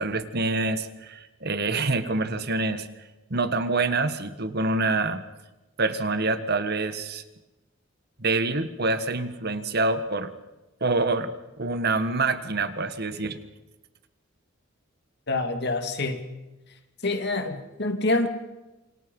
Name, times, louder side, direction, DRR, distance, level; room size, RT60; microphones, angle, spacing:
voice 1, 0.0-2.9 3.3-5.2 5.8-7.2 8.2-10.3 10.8-11.3 11.6-13.4, right 3 dB, 50° right, 10 dB, 1.7 m, -26 dB
voice 2, 15.3-16.3 17.0-18.3, left 2 dB, 55° left, 6 dB, 2.5 m, -26 dB
28.0 x 25.0 x 5.5 m, 1.0 s
head